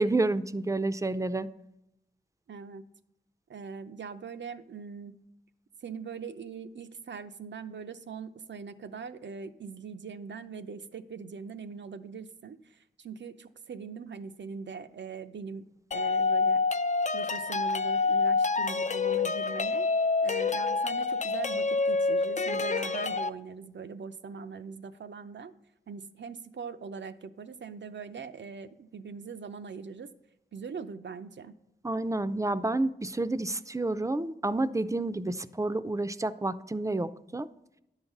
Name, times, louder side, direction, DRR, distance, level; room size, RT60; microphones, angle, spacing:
voice 1, 0.0-1.5 31.8-37.5, right 2 dB, 15° right, 13 dB, 0.5 m, -29 dB
voice 2, 2.5-2.9 3.5-5.2 5.8-16.6 17.1-19.9 20.2-25.5 25.9-30.1 30.5-31.6, right 5 dB, 80° right, 9 dB, 0.5 m, -41 dB
sound 1, 15.9-23.3, left 4 dB, 40° left, 0.4 m, -27 dB
10.0 x 4.0 x 7.1 m, 0.87 s
cardioid pair, 45°, 18 cm